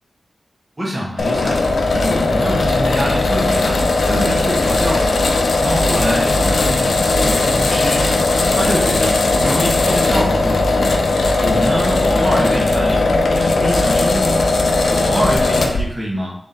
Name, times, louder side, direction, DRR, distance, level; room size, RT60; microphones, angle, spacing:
voice 1, 0.8-1.6 1.9-3.8 4.1-5.0 5.6-8.1 8.5-10.8 11.4-13.0 13.3-14.5 14.9-16.3, equal, 25° right, -6 dB, 1.1 m, -24 dB
sound 1, 1.2-15.8, left 2 dB, 85° left, 0.4 m, -17 dB
3.5 x 3.5 x 2.7 m, 0.65 s
cardioid pair, 60°, 0 cm